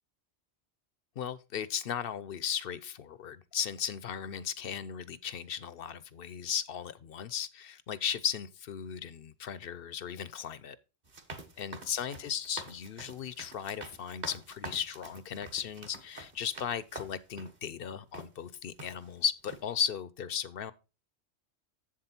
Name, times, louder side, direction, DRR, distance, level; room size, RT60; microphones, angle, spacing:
voice 1, 1.2-10.8 11.6-20.7, left 8 dB, 60° left, 0.8 m, -36 dB
sound 1, 11.0-17.6 18.1-18.3 18.8-19.2 19.5-19.6, right 2 dB, 40° right, 1.3 m, -46 dB
7.6 x 7.5 x 4.3 m
omnidirectional pair, 1.2 m